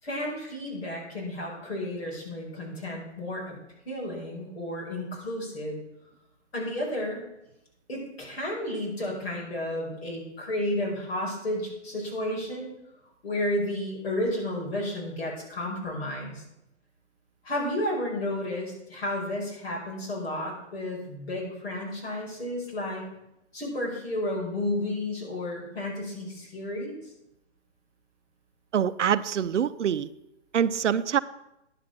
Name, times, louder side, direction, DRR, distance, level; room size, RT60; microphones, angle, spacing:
voice 1, 0.0-3.5 3.8-5.8 6.5-7.2 7.9-12.7 13.2-16.4 17.4-23.0 23.5-27.0, left 1 dB, 55° left, -3 dB, 5.1 m, -32 dB
voice 2, 28.7-30.1 30.5-31.2, right 8 dB, 75° right, 14 dB, 0.6 m, -25 dB
10.5 x 7.8 x 5.9 m, 0.85 s
hypercardioid pair, 180°, 37 cm